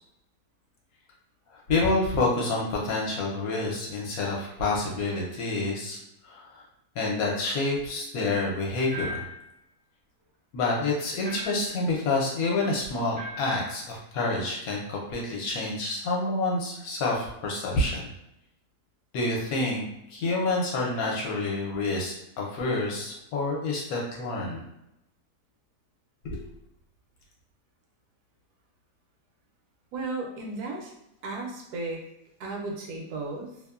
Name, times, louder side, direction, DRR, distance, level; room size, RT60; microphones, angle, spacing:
voice 1, 1.7-6.0 6.2-6.6 6.9-9.3 10.5-18.1 19.1-19.8 20.1-24.6 26.2-26.4, left 2 dB, 70° left, -2 dB, 1.1 m, -28 dB
sound 1, 8.9-9.4 11.2-11.7 13.1-13.6, equal, 50° right, 0.4 m, -38 dB
voice 2, 29.9-30.9 31.2-32.0 32.4-33.6, right 2 dB, 75° right, 0 dB, 1.1 m, -34 dB
2.8 x 2.1 x 2.3 m, 0.82 s
omnidirectional pair, 1.7 m